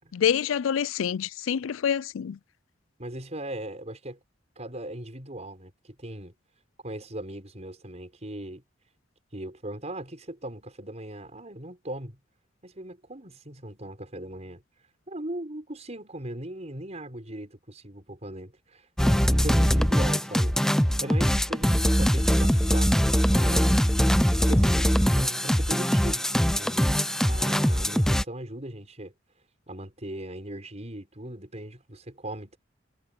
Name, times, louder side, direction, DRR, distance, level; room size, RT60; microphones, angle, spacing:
voice 1, 0.1-2.4, left 8 dB, 90° left, 0.4 m, -26 dB
voice 2, 3.0-4.2 4.6-6.3 6.8-8.6 9.3-12.2 12.6-14.6 15.1-23.8 24.4-29.1 29.7-32.6, right 1 dB, 35° right, 6.3 m, -39 dB
sound 1, 19.0-28.2, equal, 5° left, 0.6 m, -22 dB
head